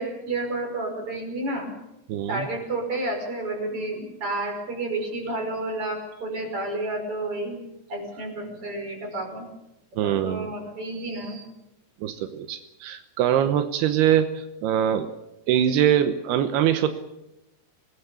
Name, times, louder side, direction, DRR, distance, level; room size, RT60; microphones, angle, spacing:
voice 1, 0.0-1.7 2.3-7.6 7.9-9.5 10.0-11.4, right 2 dB, 35° right, 2 dB, 6.2 m, -30 dB
voice 2, 2.1-2.5 10.0-10.5 10.9-11.4 12.0-15.1 15.5-16.9, right 10 dB, 85° right, 9 dB, 3.0 m, -23 dB
25.5 x 19.5 x 7.0 m, 0.93 s
omnidirectional pair, 4.5 m